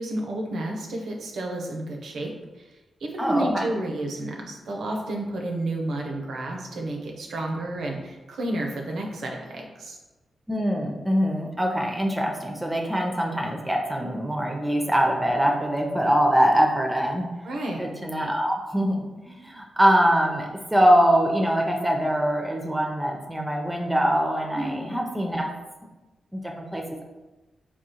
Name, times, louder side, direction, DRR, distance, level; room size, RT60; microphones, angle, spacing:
voice 1, 0.0-2.3 3.0-10.0 17.4-17.8 24.5-24.8, right 1 dB, 75° right, 1 dB, 0.6 m, -31 dB
voice 2, 3.2-3.7 10.5-17.3 17.8-25.5 26.3-27.0, equal, 15° right, 0 dB, 0.5 m, -23 dB
3.5 x 2.3 x 2.9 m, 1.1 s
supercardioid pair, 40°, 0 cm